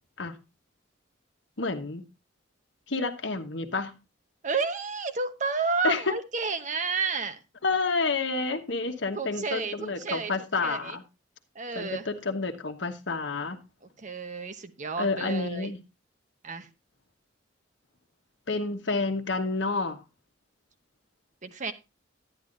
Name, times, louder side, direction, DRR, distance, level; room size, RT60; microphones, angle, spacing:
voice 1, 1.6-2.0 2.9-3.9 5.8-6.1 7.6-11.0 11.7-13.6 15.0-15.8 18.5-20.0, left 3 dB, 65° left, 1.2 m, -29 dB
voice 2, 4.4-7.4 9.1-10.3 10.6-11.0 11.5-12.1 14.0-15.7 16.4-16.7 21.4-21.7, right 4 dB, 40° right, 0.9 m, -31 dB
11.0 x 10.5 x 2.6 m
head